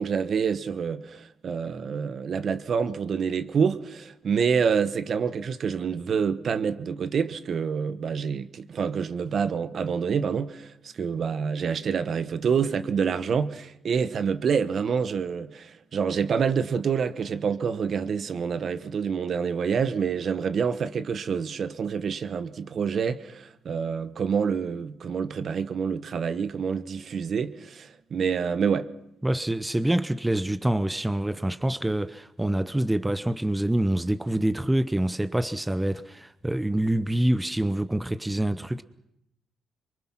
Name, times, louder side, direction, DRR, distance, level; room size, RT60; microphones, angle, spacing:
voice 1, 0.0-28.9, right 6 dB, 55° right, 1.1 m, -27 dB
voice 2, 29.2-38.8, right 1 dB, 10° right, 0.8 m, -26 dB
24.5 x 23.5 x 6.0 m
cardioid pair, 90°, 0 cm